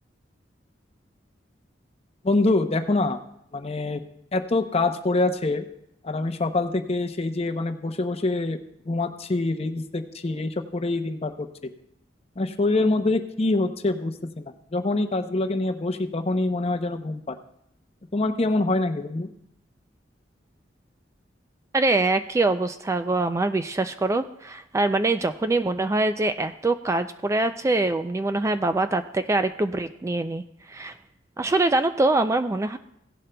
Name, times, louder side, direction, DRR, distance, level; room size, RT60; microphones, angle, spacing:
voice 1, 2.2-3.2 3.5-4.0 4.3-5.7 6.0-8.6 8.9-11.5 12.4-17.4 18.1-19.3, left 2 dB, 35° left, 7 dB, 0.7 m, -25 dB
voice 2, 21.7-30.4 30.7-30.9 31.4-32.8, right 2 dB, 15° right, 9 dB, 0.3 m, -24 dB
16.5 x 11.0 x 2.2 m, 0.76 s
head